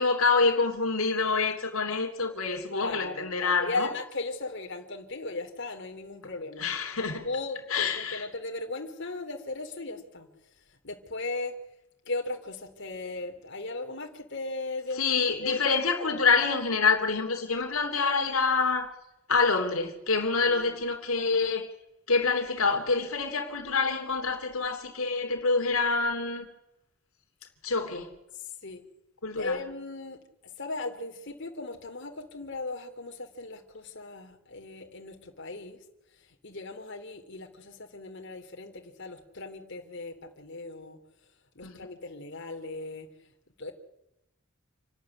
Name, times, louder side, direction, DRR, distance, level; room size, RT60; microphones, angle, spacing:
voice 1, 0.0-3.9 6.6-7.3 7.7-8.2 15.0-18.9 19.3-21.7 22.1-26.4 27.6-28.1 29.2-29.6 41.6-41.7, left 4 dB, 80° left, 3.2 m, -26 dB
voice 2, 2.7-6.7 7.2-11.6 12.0-16.3 20.4-20.8 28.3-28.8 29.4-35.8 36.1-41.0 41.5-43.3 43.6-43.7, left 3 dB, 55° left, 3.3 m, -37 dB
28.0 x 12.5 x 9.9 m
head